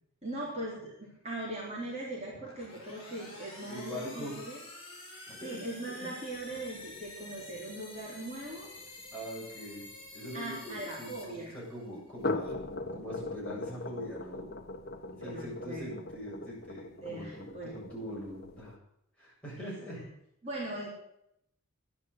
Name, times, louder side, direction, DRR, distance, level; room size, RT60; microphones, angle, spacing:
voice 1, 0.2-4.6 5.1-8.7 10.3-11.6 15.1-15.9 17.0-17.7 19.6-20.0 20.4-20.9, right 1 dB, 30° right, -5 dB, 3.9 m, -40 dB
sound 1, 2.3-12.0, left 2 dB, 25° left, 4.7 m, -49 dB
voice 2, 3.7-4.3 5.3-6.1 9.1-9.8 10.1-12.6 12.9-14.5 15.2-18.8 19.2-20.0, equal, 5° left, -7 dB, 7.7 m, -42 dB
sound 2, 6.3-10.9 12.0-18.8, left 2 dB, 50° left, 1.3 m, -41 dB
11.0 x 11.0 x 8.1 m, 0.77 s
head